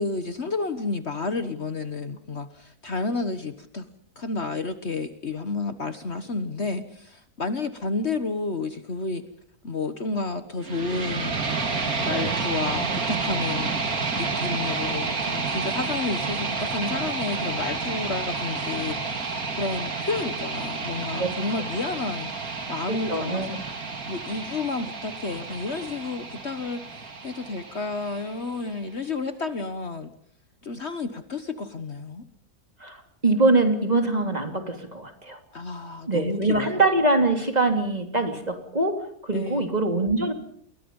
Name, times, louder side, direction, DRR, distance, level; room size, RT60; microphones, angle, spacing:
voice 1, 0.0-3.9 4.2-9.2 9.6-11.4 12.1-13.8 14.1-22.3 22.7-23.6 24.1-30.1 30.6-32.2 35.5-36.7 39.3-39.7, left 3 dB, 45° left, 10 dB, 1.5 m, -31 dB
sound 1, 10.6-28.6, right 4 dB, 70° right, 3.0 m, -30 dB
voice 2, 22.9-23.5 32.8-35.4 36.0-40.3, right 2 dB, 25° right, 5 dB, 3.0 m, -23 dB
29.5 x 22.0 x 5.5 m, 0.63 s
omnidirectional pair, 1.6 m